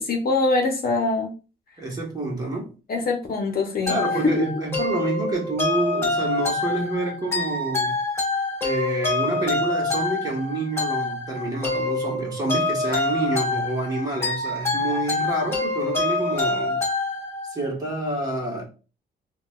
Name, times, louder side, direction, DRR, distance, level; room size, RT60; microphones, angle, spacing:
voice 1, 0.0-1.3 2.9-4.3, left 3 dB, 50° left, 0.8 m, -23 dB
voice 2, 1.8-2.7 3.9-8.0 8.6-16.8 17.5-18.6, right 2 dB, 20° right, 1.4 m, -28 dB
sound 1, 3.9-17.7, left 2 dB, 10° left, 1.6 m, -26 dB
3.8 x 2.3 x 2.3 m
cardioid pair, 90°, 20 cm